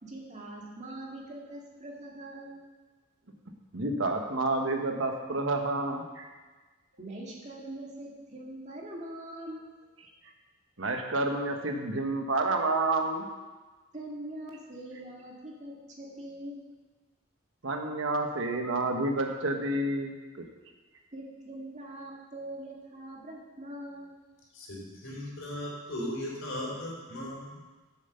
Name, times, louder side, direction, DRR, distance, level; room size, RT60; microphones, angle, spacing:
voice 1, 0.0-2.6 7.0-9.6 13.9-16.6 21.1-24.1, right 1 dB, 35° right, -2 dB, 2.0 m, -42 dB
voice 2, 3.7-6.3 10.8-13.2 17.6-20.4, right 2 dB, 70° right, 4 dB, 1.2 m, -29 dB
voice 3, 24.5-27.6, left 1 dB, 70° left, -2 dB, 3.3 m, -37 dB
8.0 x 7.2 x 6.9 m, 1.3 s
head